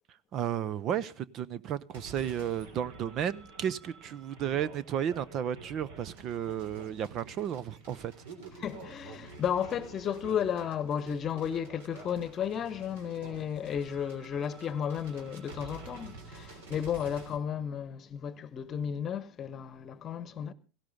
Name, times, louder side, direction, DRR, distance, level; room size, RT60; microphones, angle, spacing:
voice 1, 0.3-8.1, right 9 dB, 35° right, 0.7 m, -33 dB
sound 1, 1.9-17.4, right 3 dB, 60° right, 3.2 m, -49 dB
voice 2, 8.6-20.5, left 8 dB, 30° left, 1.1 m, -33 dB
18.0 x 16.0 x 3.7 m
figure-of-eight pair, 80°, 0 cm